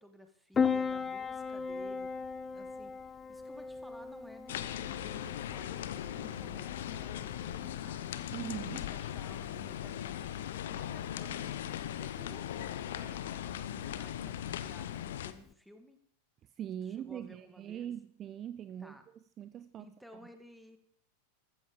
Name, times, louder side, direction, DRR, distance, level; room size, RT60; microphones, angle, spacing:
voice 1, 0.0-2.1 2.5-8.3 8.5-11.7 12.0-16.0 16.9-17.9 18.8-19.0 19.8-20.8, equal, ahead, 7 dB, 1.8 m, -55 dB
Piano, 0.5-15.5, left 5 dB, 20° left, 0.7 m, -39 dB
sound 1, 4.5-15.3, left 11 dB, 60° left, 0.8 m, -39 dB
voice 2, 8.3-8.9 16.6-19.0 19.4-20.2, right 10 dB, 30° right, 14 dB, 0.5 m, -42 dB
14.5 x 13.5 x 3.8 m, 0.64 s
figure-of-eight pair, 90°, 0 cm